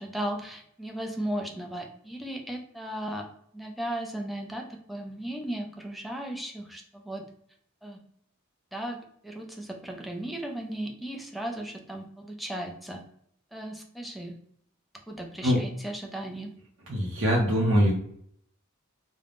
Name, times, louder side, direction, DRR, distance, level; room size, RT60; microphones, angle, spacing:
voice 1, 0.0-3.3 3.5-7.3 7.8-8.0 8.7-13.0 13.5-14.4 15.1-16.6, right 1 dB, ahead, 1 dB, 0.4 m, -36 dB
voice 2, 16.9-17.9, equal, 65° right, -4 dB, 0.6 m, -22 dB
3.3 x 2.1 x 2.4 m, 0.66 s
head